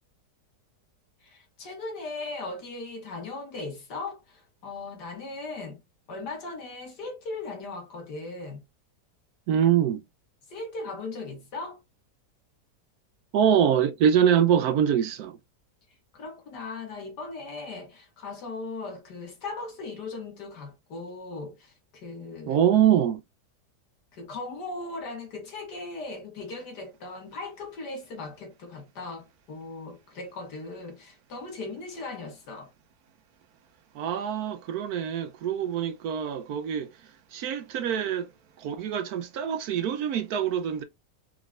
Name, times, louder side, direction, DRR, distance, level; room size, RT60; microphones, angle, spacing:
voice 1, 1.2-5.8 6.1-8.6 10.5-11.8 16.1-22.6 24.1-32.7, left 3 dB, 75° left, 2.1 m, -38 dB
voice 2, 9.5-10.0 13.3-15.4 22.5-23.2 33.9-38.3 38.6-40.8, right 9 dB, 70° right, 1.0 m, -24 dB
4.6 x 3.8 x 2.4 m
omnidirectional pair, 1.8 m